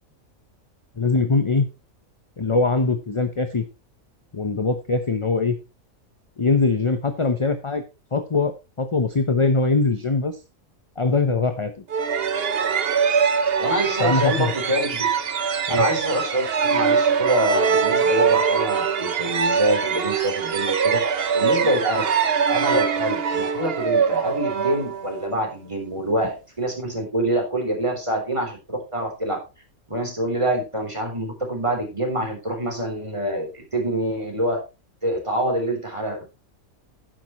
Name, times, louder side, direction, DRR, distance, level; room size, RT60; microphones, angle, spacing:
voice 1, 1.0-1.7 2.4-3.6 4.3-5.6 6.4-7.8 8.1-8.5 8.8-10.4 11.0-11.7 14.0-14.5 15.7-15.8, left 3 dB, 25° left, 8 dB, 0.7 m, -22 dB
sound 1, 11.9-25.4, right 6 dB, 50° right, 1.0 m, -22 dB
voice 2, 13.6-15.1 15.7-21.0 21.3-22.1 22.5-29.4 29.9-34.6 35.0-36.3, right 1 dB, 20° right, 2 dB, 3.7 m, -25 dB
11.5 x 9.6 x 3.0 m, 0.27 s
omnidirectional pair, 1.4 m